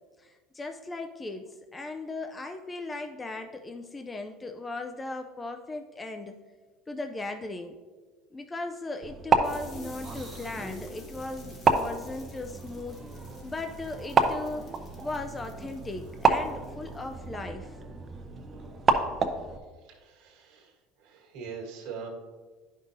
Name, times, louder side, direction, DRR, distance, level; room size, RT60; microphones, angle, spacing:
voice 1, 0.2-6.4 6.9-7.8 8.3-13.0 13.4-14.7 15.0-17.8, left 2 dB, 15° left, 5 dB, 0.4 m, -37 dB
sound 1, 9.0-19.6, right 4 dB, 30° right, 0.6 m, -30 dB
sound 2, 9.4-17.3, left 3 dB, 40° left, 1.3 m, -54 dB
voice 2, 19.8-22.1, right 6 dB, 65° right, 0 dB, 1.5 m, -42 dB
11.0 x 5.3 x 2.6 m, 1.4 s
cardioid pair, 135°, 0 cm